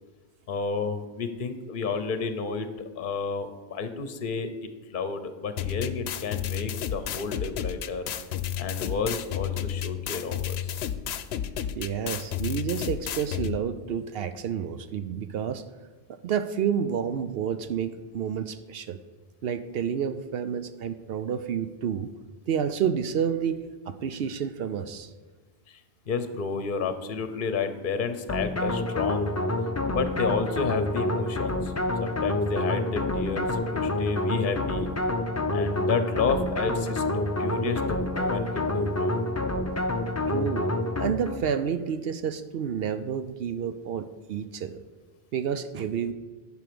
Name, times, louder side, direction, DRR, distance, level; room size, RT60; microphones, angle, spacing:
voice 1, 0.5-2.7 3.0-8.0 8.6-10.8 25.7-25.8 26.1-29.3 29.9-31.7 32.0-34.9 35.5-39.2, left 5 dB, 55° left, 10 dB, 0.9 m, -31 dB
sound 1, 5.6-13.6, left 10 dB, 85° left, 0.8 m, -32 dB
voice 2, 11.8-15.6 16.1-19.0 19.4-22.1 22.5-23.6 23.9-25.1 40.3-40.6 41.0-44.8 45.3-46.1, right 8 dB, 70° right, 12 dB, 0.8 m, -29 dB
sound 2, 28.3-41.5, left 1 dB, 20° left, 0.5 m, -28 dB
11.0 x 5.1 x 6.8 m, 1.3 s
omnidirectional pair, 1.0 m